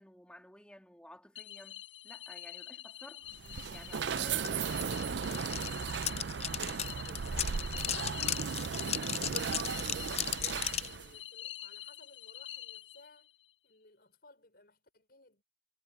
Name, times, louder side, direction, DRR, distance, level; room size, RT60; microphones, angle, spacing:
voice 1, 0.0-3.2 3.7-5.7, equal, 5° left, 3.1 m, -55 dB
sound 1, 1.3-13.3, left 13 dB, 85° left, 6.0 m, -47 dB
sound 2, 3.3-11.1, right 6 dB, 65° right, 0.5 m, -36 dB
sound 3, 4.2-4.3 4.4-10.9, left 10 dB, 35° left, 0.5 m, -36 dB
voice 2, 7.0-13.3 13.6-15.4, left 2 dB, 55° left, 5.7 m, -59 dB
head